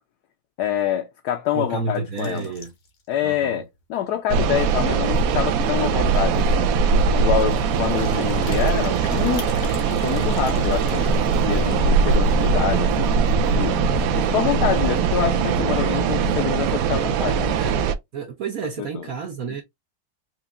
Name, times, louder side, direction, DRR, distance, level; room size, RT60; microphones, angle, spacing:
voice 1, 0.6-2.5 3.1-3.6 3.9-6.7 7.1-9.5 9.9-11.1 11.5-13.1 13.5-17.6 18.8-19.0, left 10 dB, 70° left, 1.1 m, -26 dB
voice 2, 1.5-2.7 3.2-3.6 17.6-17.8 18.1-19.6, right 4 dB, 60° right, 1.0 m, -30 dB
sound 1, 2.1-3.1 3.5-3.6 3.8-3.9 4.4-4.5 5.7-5.8 6.0-6.3 7.3-12.0, left 5 dB, 85° left, 2.0 m, -43 dB
sound 2, 4.3-17.9, right 5 dB, 85° right, 0.7 m, -21 dB
sound 3, 10.9-16.5, right 1 dB, 45° right, 0.5 m, -31 dB
4.6 x 3.0 x 2.4 m
omnidirectional pair, 2.0 m